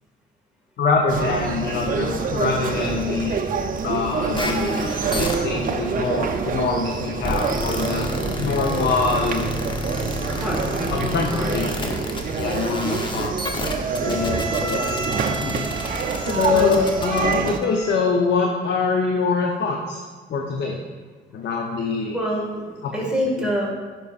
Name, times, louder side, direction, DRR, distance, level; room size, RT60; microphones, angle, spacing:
voice 1, 0.8-3.4 3.8-8.1 8.4-9.4 10.9-11.9 12.3-13.4 14.0-14.8 15.3-15.6 16.3-20.0 20.3-20.8 21.3-22.2 22.8-22.9 23.4-23.5, left 4 dB, 60° left, 1 dB, 0.8 m, -24 dB
sound 1, 1.1-17.6, right 5 dB, 45° right, 0.6 m, -26 dB
sound 2, 4.3-17.9, left 1 dB, 25° left, 0.9 m, -30 dB
voice 2, 10.3-11.6 12.4-12.8 16.5-16.7 17.2-17.5 22.1-23.7, equal, 5° right, -4 dB, 1.9 m, -27 dB
10.5 x 5.4 x 2.5 m, 1.5 s
cardioid pair, 90°, 20 cm